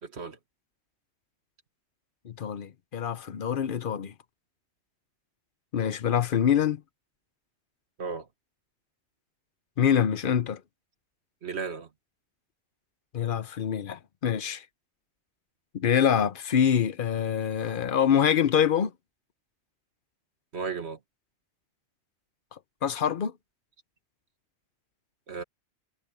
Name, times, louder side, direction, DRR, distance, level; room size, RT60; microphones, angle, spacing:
voice 1, 0.0-0.4 8.0-8.3 11.4-11.9 20.5-21.0 25.3-25.4, right 5 dB, 70° right, 1.8 m, -34 dB
voice 2, 2.2-4.1 5.7-6.8 9.8-10.6 13.1-14.6 15.7-18.9 22.5-23.3, left 8 dB, 55° left, 0.9 m, -25 dB
omnidirectional pair, 1.2 m